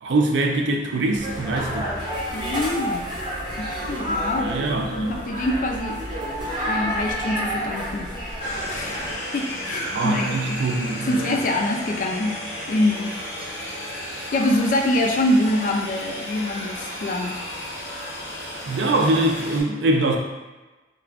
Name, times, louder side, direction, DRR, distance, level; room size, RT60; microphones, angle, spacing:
voice 1, 0.0-1.9 4.4-5.1 9.8-11.4 18.7-20.2, right 2 dB, 85° right, 1 dB, 0.4 m, -23 dB
sound 1, 1.1-9.1, equal, 25° right, 0.7 m, -29 dB
voice 2, 2.3-3.0 3.6-6.0 6.6-8.1 8.6-9.0 9.3-10.6 11.1-12.4 12.7-13.2 14.3-17.4, left 1 dB, 50° left, 2 dB, 0.3 m, -25 dB
sound 2, 8.4-19.6, equal, 70° left, 0.8 m, -33 dB
2.4 x 2.2 x 3.4 m, 1.2 s
head